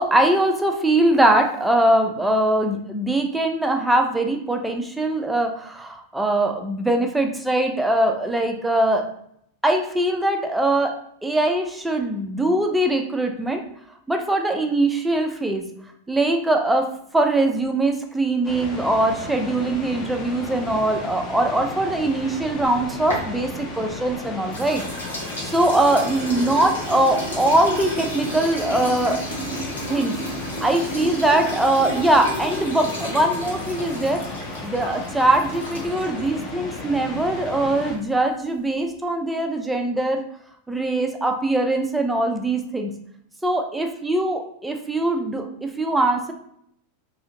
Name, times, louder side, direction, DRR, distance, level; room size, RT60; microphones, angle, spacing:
voice 1, 0.0-9.1 9.6-13.6 14.1-15.7 16.1-24.8 25.4-29.2 29.9-30.2 30.6-34.2 34.6-40.2 40.7-42.9 43.4-46.3, right 1 dB, 5° right, 4 dB, 0.4 m, -22 dB
sound 1, 18.4-38.0, left 3 dB, 30° left, 0.6 m, -34 dB
sound 2, 22.6-24.1 24.5-36.3, equal, 75° left, 0.9 m, -33 dB
2.7 x 2.4 x 2.8 m, 0.70 s
figure-of-eight pair, 90°, 0 cm